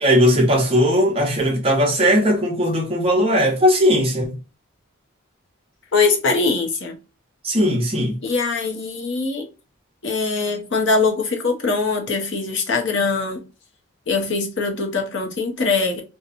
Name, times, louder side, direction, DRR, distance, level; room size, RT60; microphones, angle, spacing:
voice 1, 0.0-4.3 7.4-8.2, equal, 25° right, 0.8 m, -18 dB
voice 2, 5.9-7.0 8.2-9.5 10.0-13.4 14.1-16.0, left 4 dB, 55° left, 0.7 m, -22 dB
2.9 x 2.1 x 2.5 m
head